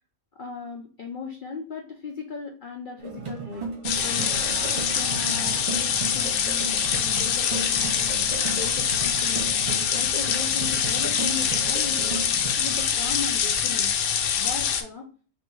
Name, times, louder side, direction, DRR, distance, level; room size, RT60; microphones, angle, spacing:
voice 1, 0.4-3.7 4.0-4.4 4.7-12.1 12.5-13.9 14.4-15.1, left 5 dB, 60° left, 1 dB, 0.5 m, -37 dB
sound 1, 3.0-12.6, right 4 dB, 40° right, 0.6 m, -36 dB
sound 2, 3.8-14.8, left 8 dB, 90° left, 1.1 m, -24 dB
sound 3, 4.0-7.8, right 5 dB, 70° right, 1.1 m, -43 dB
3.4 x 2.6 x 4.4 m, 0.41 s
omnidirectional pair, 1.5 m